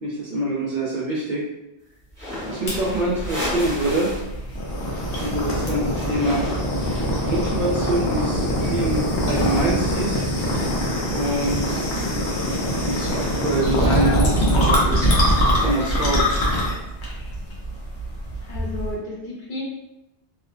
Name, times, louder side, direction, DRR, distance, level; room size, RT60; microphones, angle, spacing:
voice 1, 0.0-1.5 2.4-4.1 5.2-6.4 7.2-10.2 11.0-11.8 12.8-15.1 15.6-16.3, right 1 dB, 55° right, -5 dB, 0.6 m, -25 dB
sound 1, 2.1-4.3 4.6-7.7, left 1 dB, 5° left, 0.8 m, -34 dB
sound 2, 2.7-18.9, equal, 80° left, 1.0 m, -23 dB
voice 2, 18.5-19.6, left 1 dB, 50° left, -6 dB, 0.8 m, -32 dB
2.9 x 2.0 x 2.4 m, 0.91 s
omnidirectional pair, 1.1 m